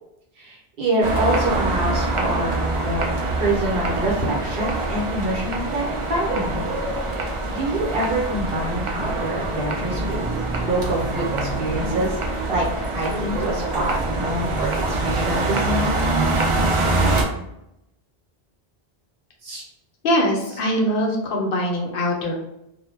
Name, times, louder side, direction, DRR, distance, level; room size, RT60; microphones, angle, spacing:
voice 1, 0.4-6.6 7.1-10.2 10.5-12.2 12.5-15.9 19.4-19.6, right 1 dB, 70° right, -3 dB, 0.9 m, -26 dB
sound 1, 1.0-17.2, right 2 dB, 55° right, 0.3 m, -24 dB
voice 2, 20.0-22.3, equal, 65° left, 0 dB, 0.7 m, -22 dB
2.2 x 2.0 x 3.1 m, 0.83 s
omnidirectional pair, 1.0 m